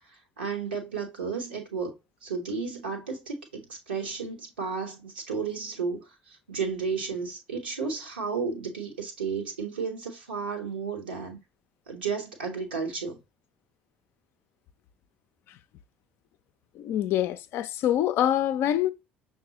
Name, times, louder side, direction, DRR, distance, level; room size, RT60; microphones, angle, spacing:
voice 1, 0.4-2.0 2.2-6.0 6.5-11.4 11.9-13.2, right 5 dB, 80° right, 1.0 m, -33 dB
voice 2, 16.8-18.9, left 11 dB, 55° left, 0.4 m, -25 dB
5.9 x 2.2 x 2.9 m
figure-of-eight pair, 55°, 5 cm